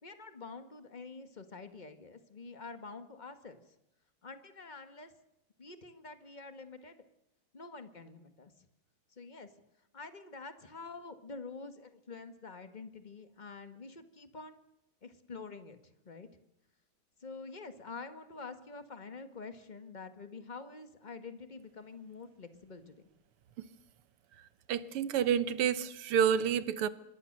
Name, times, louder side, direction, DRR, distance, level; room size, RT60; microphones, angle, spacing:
voice 1, 0.0-3.6 4.2-5.1 5.6-6.9 7.5-8.5 9.1-9.5 9.9-14.6 15.0-16.3 17.2-22.9, left 4 dB, 25° left, 9 dB, 1.4 m, -47 dB
voice 2, 24.7-26.9, right 8 dB, 90° right, 15 dB, 2.0 m, -29 dB
25.5 x 21.5 x 6.7 m, 0.89 s
omnidirectional pair, 2.4 m